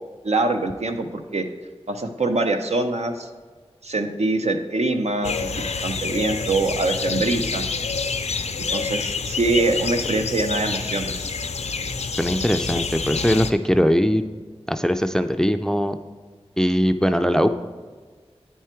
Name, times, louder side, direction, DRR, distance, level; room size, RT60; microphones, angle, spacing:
voice 1, 0.2-1.5 1.9-3.3 3.8-5.5 5.8-7.6 8.7-11.3, right 2 dB, 75° right, 6 dB, 0.6 m, -24 dB
sound 1, 5.2-13.5, left 4 dB, 80° left, 0.4 m, -27 dB
voice 2, 12.2-14.2 14.7-16.0 16.6-17.5, equal, 5° left, 9 dB, 0.3 m, -20 dB
9.2 x 4.7 x 4.4 m, 1.5 s
wide cardioid pair, 65°, 11 cm